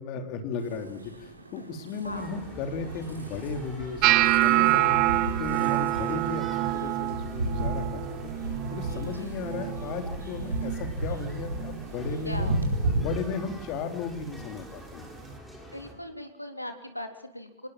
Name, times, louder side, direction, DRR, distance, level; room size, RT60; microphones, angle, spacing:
voice 1, 0.0-5.0 5.4-6.4 6.7-8.2 8.7-12.6 13.0-15.1, left 4 dB, 40° left, 6 dB, 3.6 m, -35 dB
sound 1, 0.6-13.0, right 1 dB, 80° right, 4.6 m, -34 dB
sound 2, 2.1-15.9, equal, ahead, 7.7 m, -46 dB
sound 3, 4.0-10.1 10.4-10.9 11.3-11.8 12.4-12.6 14.4-14.5, right 16 dB, 40° right, 1.1 m, -26 dB
voice 2, 12.3-12.6 15.7-17.7, left 1 dB, 85° left, 6 dB, 3.4 m, -39 dB
26.5 x 20.5 x 7.5 m, 0.79 s
figure-of-eight pair, 90°, 0 cm